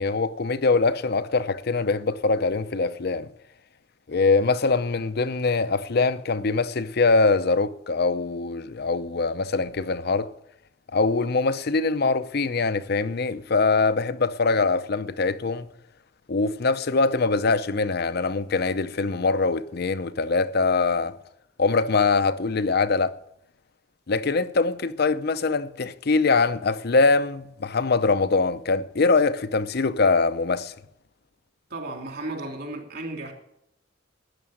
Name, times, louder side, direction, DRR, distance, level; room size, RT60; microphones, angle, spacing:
voice 1, 0.0-3.3 4.1-10.3 10.9-15.7 16.3-21.1 21.6-23.1 24.1-30.7, left 4 dB, 55° left, 0.7 m, -23 dB
voice 2, 31.7-33.3, right 2 dB, 55° right, 2.9 m, -34 dB
13.0 x 10.0 x 6.4 m
head